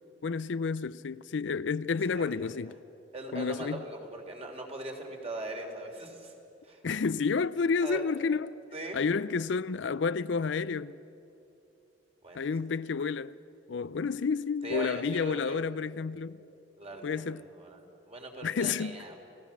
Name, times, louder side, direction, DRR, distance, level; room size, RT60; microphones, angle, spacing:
voice 1, 0.2-2.7 3.3-3.8 6.8-8.6 8.9-11.0 12.3-13.4 13.7-16.4 17.0-17.4 18.4-19.0, left 5 dB, 75° left, 0.5 m, -30 dB
voice 2, 2.1-2.7 3.1-6.3 6.6-6.8 7.8-8.0 8.7-9.0 12.2-12.5 14.6-15.6 16.8-17.8 18.1-19.2, right 1 dB, 35° right, 3.3 m, -40 dB
30.0 x 17.5 x 7.2 m
head